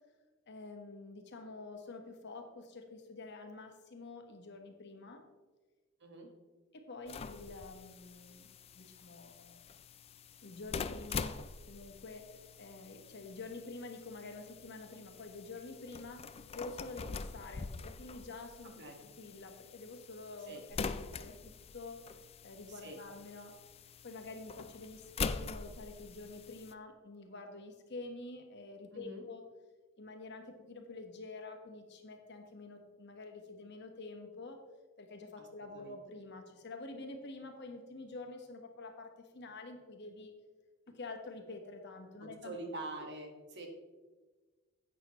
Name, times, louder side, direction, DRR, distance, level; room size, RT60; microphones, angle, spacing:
voice 1, 0.5-5.2 6.7-9.6 10.4-22.0 22.4-23.6 24.0-29.5 30.0-34.6 35.0-40.3 40.9-42.5, left 3 dB, 60° left, 4 dB, 1.4 m, -48 dB
sound 1, 7.1-26.7, left 5 dB, 30° left, 0.4 m, -44 dB
voice 2, 22.7-23.0 28.9-29.2 35.4-35.5 35.7-36.0 42.2-43.7, right 2 dB, 60° right, 3 dB, 1.7 m, -45 dB
11.0 x 8.5 x 3.1 m, 1.3 s
head